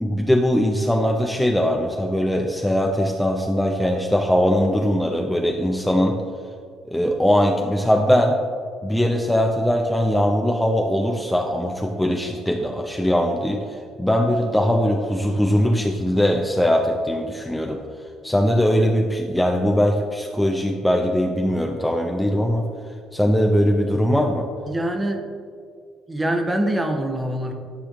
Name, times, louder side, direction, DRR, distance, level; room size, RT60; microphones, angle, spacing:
voice 1, 0.0-6.2 6.9-8.4 8.8-17.8 18.2-22.7 23.1-24.5, equal, 5° left, 2 dB, 0.6 m, -21 dB
voice 2, 24.7-25.3 26.1-27.5, right 1 dB, 20° right, 4 dB, 0.9 m, -24 dB
10.0 x 5.0 x 2.5 m, 2.1 s
hypercardioid pair, 55°, 0 cm